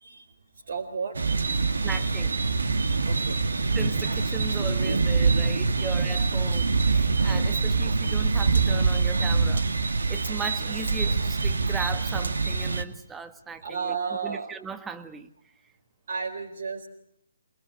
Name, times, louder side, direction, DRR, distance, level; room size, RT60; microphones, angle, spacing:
voice 1, 0.7-1.2 3.1-3.4 13.6-14.5 16.1-16.9, right 5 dB, 55° right, 4.3 m, -32 dB
sound 1, 1.1-12.8, right 4 dB, 70° right, 2.0 m, -24 dB
voice 2, 1.8-2.3 3.7-14.0 14.2-15.3, right 5 dB, 10° right, 1.7 m, -38 dB
27.0 x 21.5 x 8.4 m
figure-of-eight pair, 135°, 0 cm